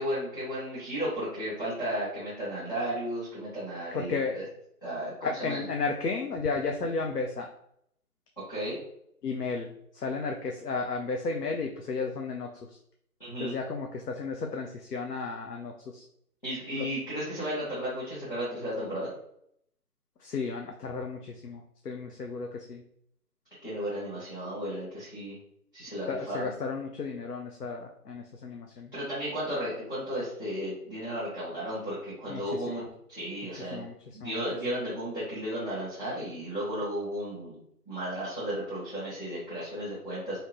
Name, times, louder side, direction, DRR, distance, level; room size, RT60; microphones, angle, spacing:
voice 1, 0.0-4.4 4.8-5.7 8.5-8.8 13.2-13.5 16.4-19.1 23.6-25.4 25.7-26.5 28.9-32.8 33.1-33.8 34.1-37.6 37.9-40.4, equal, 35° left, -11 dB, 1.3 m, -34 dB
voice 2, 3.9-4.4 5.2-7.5 9.2-9.7 10.0-12.5 13.4-16.0 20.2-21.6 21.9-22.8 26.1-28.9 32.3-32.9 33.7-33.9 34.2-34.3, left 4 dB, 80° left, 2 dB, 0.6 m, -33 dB
3.1 x 2.7 x 2.9 m, 0.71 s
figure-of-eight pair, 170°, 46 cm